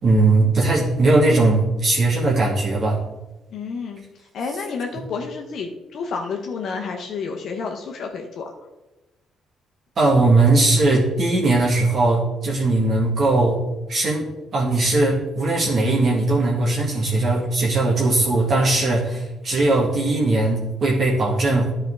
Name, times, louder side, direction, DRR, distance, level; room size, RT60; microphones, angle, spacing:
voice 1, 0.0-3.0 10.0-13.6 13.9-14.3 14.5-21.7, right 2 dB, 50° right, -4 dB, 1.7 m, -19 dB
voice 2, 3.5-4.0 4.3-8.4, left 5 dB, 65° left, 2 dB, 0.8 m, -30 dB
11.0 x 4.4 x 3.7 m, 1.1 s
cardioid pair, 90°, 0 cm